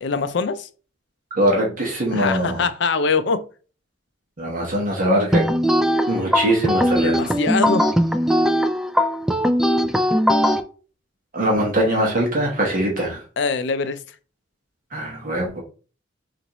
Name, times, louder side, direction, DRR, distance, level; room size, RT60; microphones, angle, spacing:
voice 1, 0.0-0.7 2.1-3.5 7.0-7.9 13.4-14.0, left 4 dB, 65° left, 0.5 m, -23 dB
voice 2, 1.4-2.6 4.4-5.5 6.1-7.3 11.3-13.2 14.9-15.6, right 1 dB, 45° right, 1.0 m, -22 dB
sound 1, 5.3-10.6, equal, 5° right, 0.3 m, -19 dB
5.9 x 2.5 x 3.0 m
head